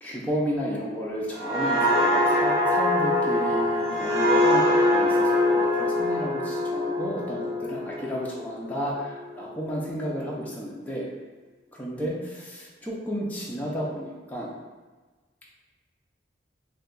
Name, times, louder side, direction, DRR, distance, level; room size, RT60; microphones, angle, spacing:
voice 1, 0.0-11.1 11.8-14.5, equal, 10° left, -5 dB, 0.4 m, -32 dB
sound 1, 1.3-8.8 9.2-9.5, left 1 dB, 30° right, 0.9 m, -23 dB
2.6 x 2.3 x 3.7 m, 1.3 s
head